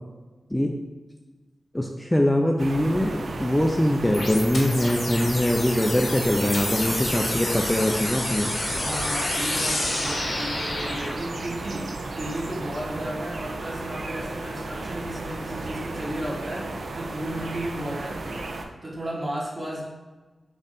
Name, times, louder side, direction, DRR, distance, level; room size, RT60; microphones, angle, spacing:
voice 1, 1.7-8.5, left 1 dB, 10° left, 2 dB, 0.3 m, -23 dB
sound 1, 2.6-18.7, right 2 dB, 75° right, 0.4 m, -34 dB
sound 2, 4.1-11.1, left 1 dB, 65° left, 0.9 m, -29 dB
voice 2, 8.7-18.5 18.8-19.9, right 1 dB, 30° right, -4 dB, 1.1 m, -34 dB
3.4 x 2.5 x 4.1 m, 1.2 s
cardioid pair, 60°, 0 cm